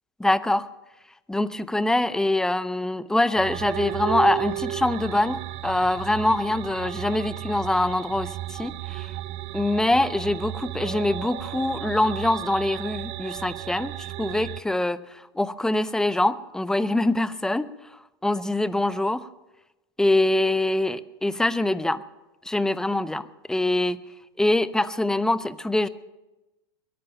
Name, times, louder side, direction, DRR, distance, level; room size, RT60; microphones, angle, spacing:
voice 1, 0.2-0.7 1.3-9.1 9.5-15.0 15.4-17.7 18.2-19.3 20.0-22.0 22.5-24.0 24.4-25.9, left 1 dB, 5° left, 16 dB, 0.6 m, -24 dB
sound 1, 3.4-14.6, right 16 dB, 45° right, 0.5 m, -34 dB
22.5 x 10.5 x 5.7 m, 1.0 s
hypercardioid pair, 105°, 14 cm